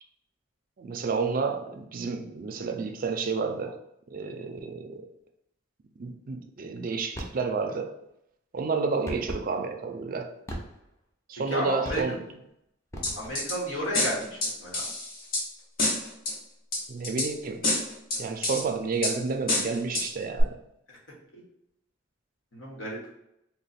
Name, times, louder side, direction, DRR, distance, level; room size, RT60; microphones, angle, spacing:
voice 1, 0.8-3.8 4.1-5.1 6.0-7.9 8.5-10.3 11.3-12.2 16.9-17.6 18.2-20.6, right 4 dB, 45° right, 6 dB, 0.4 m, -30 dB
sound 1, 7.1-7.5 9.1-9.5 10.5-11.0 11.8-12.3 12.9-13.5, equal, 15° left, 0.5 m, -38 dB
voice 2, 11.5-12.0 13.2-14.8 21.3-21.4 22.5-23.0, equal, 85° left, -3 dB, 1.2 m, -32 dB
sound 2, 13.0-13.5 13.9-15.4 15.8-16.3 16.7-17.3 17.6-18.6 19.0-19.1 19.5-20.1 20.4-20.5, left 2 dB, 50° left, 0.9 m, -27 dB
3.1 x 2.1 x 4.1 m, 0.81 s
head